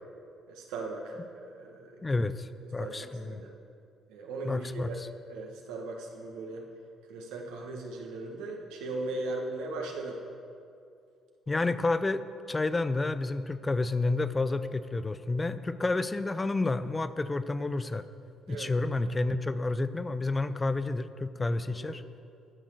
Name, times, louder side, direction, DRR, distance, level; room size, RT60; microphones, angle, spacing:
voice 1, 0.5-2.0 2.8-3.5 4.1-5.0 5.3-6.6 7.1-10.2 18.5-18.7 21.5-22.0, right 2 dB, 85° right, 1 dB, 1.4 m, -38 dB
voice 2, 2.0-3.4 4.4-5.1 11.5-18.1 18.5-22.0, left 2 dB, 25° left, 13 dB, 0.5 m, -30 dB
12.0 x 6.1 x 6.4 m, 2.5 s
supercardioid pair, 70°, 0 cm